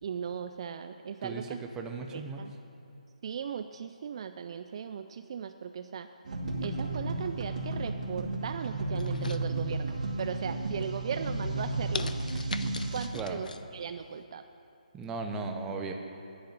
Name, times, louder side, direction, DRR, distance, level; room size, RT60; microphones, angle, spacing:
voice 1, 0.0-1.6 2.1-2.5 3.2-6.1 6.6-12.1 12.9-14.4, right 7 dB, 40° right, 9 dB, 0.4 m, -38 dB
voice 2, 1.8-2.4 13.1-13.4 14.9-15.9, right 4 dB, 10° right, 4 dB, 0.7 m, -36 dB
sound 1, 6.2-13.1, right 2 dB, 60° right, 1.4 m, -33 dB
sound 2, 9.0-10.0 10.5-10.8 11.3-11.4 11.9-13.6 14.0-14.1, left 4 dB, 80° left, 0.5 m, -39 dB
10.5 x 7.8 x 8.2 m, 2.9 s
hypercardioid pair, 160°, 4 cm